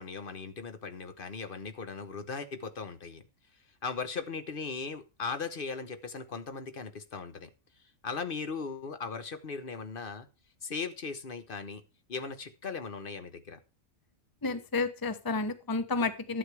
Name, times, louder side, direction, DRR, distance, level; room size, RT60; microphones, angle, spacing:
voice 1, 0.0-3.2 3.8-7.5 8.0-10.3 10.6-11.8 12.1-13.6, left 5 dB, 45° left, 10 dB, 1.1 m, -38 dB
voice 2, 14.4-16.4, left 3 dB, 20° left, 11 dB, 0.8 m, -31 dB
11.5 x 8.1 x 4.8 m, 0.31 s
omnidirectional pair, 1.4 m